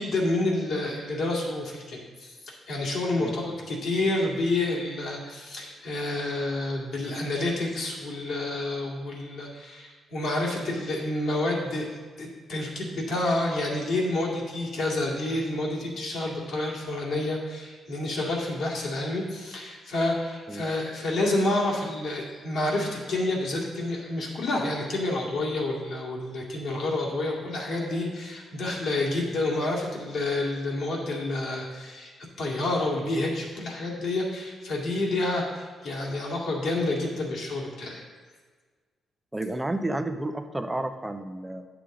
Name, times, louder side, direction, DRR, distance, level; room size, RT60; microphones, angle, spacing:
voice 1, 0.0-11.9 12.2-32.1 32.4-38.0, left 2 dB, 65° left, -2 dB, 2.2 m, -29 dB
voice 2, 39.3-41.7, right 1 dB, 10° right, 7 dB, 0.7 m, -31 dB
10.5 x 7.0 x 3.8 m, 1.5 s
cardioid pair, 95°, 0 cm